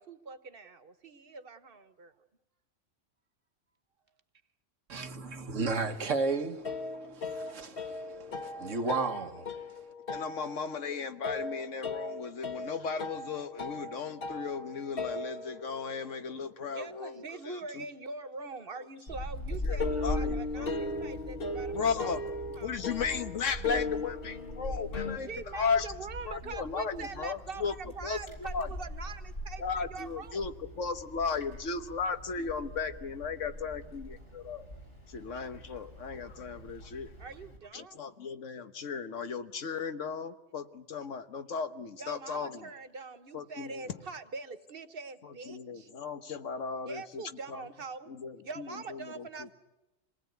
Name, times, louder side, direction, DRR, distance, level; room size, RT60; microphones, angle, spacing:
voice 1, 0.0-2.1 16.7-22.8 25.3-30.5 37.2-38.0 42.0-45.9 46.9-48.1 48.4-49.5, right 4 dB, 50° right, 1.4 m, -43 dB
voice 2, 4.9-9.5, right 4 dB, 90° right, 1.7 m, -34 dB
sound 1, 6.4-16.0 19.8-25.2, left 3 dB, 50° left, 1.8 m, -37 dB
voice 3, 10.1-17.8 19.6-20.7 21.7-22.2 22.6-25.9 26.2-27.7 28.0-28.7 29.6-34.7 35.1-37.1 37.7-42.7 43.3-44.0 45.2-47.2 47.5-47.7 48.1-49.5, left 5 dB, 90° left, 1.5 m, -36 dB
Wind, 19.1-37.6, left 1 dB, 65° left, 5.2 m, -42 dB
26.0 x 19.0 x 9.2 m
omnidirectional pair, 1.2 m